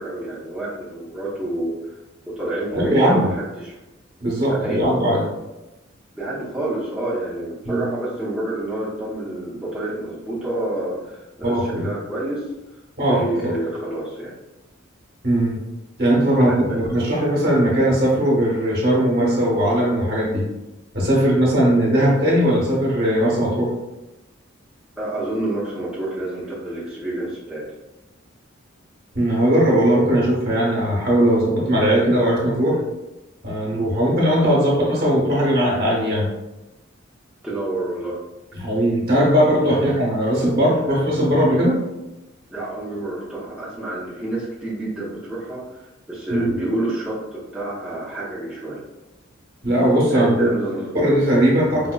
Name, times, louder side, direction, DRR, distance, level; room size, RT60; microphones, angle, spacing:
voice 1, 0.0-1.9 2.3-3.8 4.5-4.8 6.1-12.4 13.1-14.3 16.5-17.0 25.0-27.6 37.4-38.2 42.5-48.8 50.1-51.1, right 1 dB, 5° right, -9 dB, 0.7 m, -28 dB
voice 2, 2.7-3.2 4.2-5.2 7.7-7.8 11.4-11.9 13.0-13.5 15.2-15.6 16.0-20.4 20.9-23.7 29.1-32.8 33.4-36.3 38.5-41.8 46.3-46.5 49.6-50.5 50.9-51.9, equal, 50° right, -4 dB, 1.1 m, -19 dB
5.0 x 2.1 x 2.2 m, 0.99 s
head